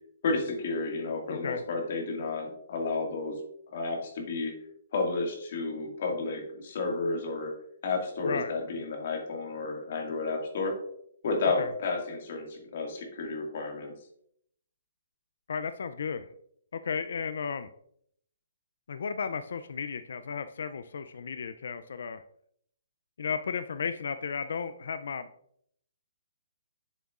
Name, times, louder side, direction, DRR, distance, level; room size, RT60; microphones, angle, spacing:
voice 1, 0.2-3.4 3.7-4.5 4.9-7.5 7.8-10.7 11.2-13.9, left 3 dB, 55° left, 1 dB, 2.0 m, -31 dB
voice 2, 15.5-16.3 16.7-17.7 18.9-22.2 23.2-25.3, left 6 dB, 70° left, 11 dB, 0.4 m, -34 dB
7.2 x 6.9 x 2.5 m, 0.69 s
hypercardioid pair, 160°, 0 cm